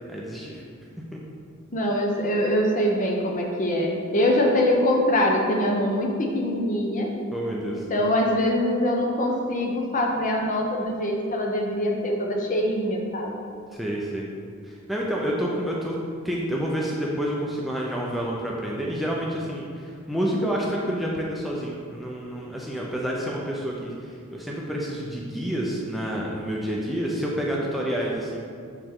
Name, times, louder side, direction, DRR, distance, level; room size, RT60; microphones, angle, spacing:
voice 1, 0.1-0.6 1.1-1.2 7.3-7.8 13.7-14.3 14.6-16.0 16.2-28.5, equal, ahead, -4 dB, 0.5 m, -29 dB
voice 2, 1.7-7.1 7.9-13.3, left 1 dB, 35° left, 0 dB, 0.7 m, -23 dB
6.5 x 4.9 x 3.7 m, 2.3 s
head